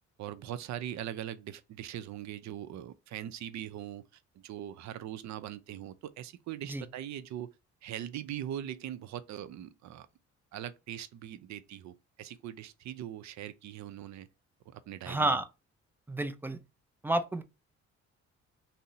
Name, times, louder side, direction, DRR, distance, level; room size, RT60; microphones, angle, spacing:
voice 1, 0.2-4.1 4.4-7.5 7.8-10.1 10.5-14.3 14.7-15.4, right 11 dB, 65° right, 0.5 m, -41 dB
voice 2, 15.1-15.5 16.1-16.6 17.0-17.4, right 2 dB, 5° right, 0.3 m, -30 dB
2.7 x 2.0 x 3.8 m
cardioid pair, 90°, 30 cm